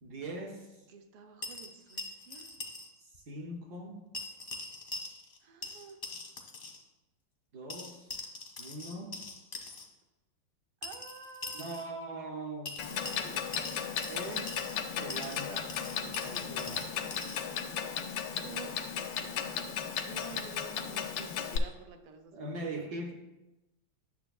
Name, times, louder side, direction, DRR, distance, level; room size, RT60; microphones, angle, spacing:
voice 1, 0.0-0.9 3.0-4.0 7.5-8.1 8.6-9.2 11.5-12.9 14.1-17.2 22.3-23.2, right 2 dB, 65° right, 2 dB, 1.0 m, -42 dB
voice 2, 0.9-2.5 5.4-6.0 10.8-11.7 13.1-13.3 18.3-19.1 19.9-22.5 22.9-23.0, right 6 dB, 85° right, 5 dB, 1.7 m, -50 dB
sound 1, 1.4-2.9 3.1-3.2 4.1-5.4 5.6-6.8 7.7-9.8 10.8-11.9 12.7-14.8 15.1-17.4, left 2 dB, 55° left, 0.6 m, -43 dB
Clock, 12.8-21.6, left 8 dB, 90° left, 1.5 m, -35 dB
10.0 x 6.8 x 2.3 m, 1.0 s
omnidirectional pair, 2.3 m